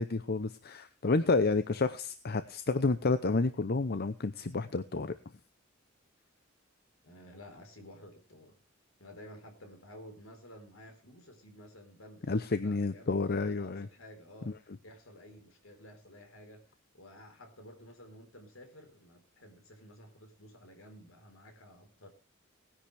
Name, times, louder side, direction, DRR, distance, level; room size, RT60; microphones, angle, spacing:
voice 1, 0.0-5.2 12.3-13.9 14.5-14.6, left 3 dB, 50° left, 12 dB, 0.7 m, -30 dB
voice 2, 7.0-8.6 9.0-16.6 16.9-22.1, equal, 75° left, 5 dB, 4.2 m, -53 dB
19.5 x 10.0 x 3.4 m, 0.33 s
head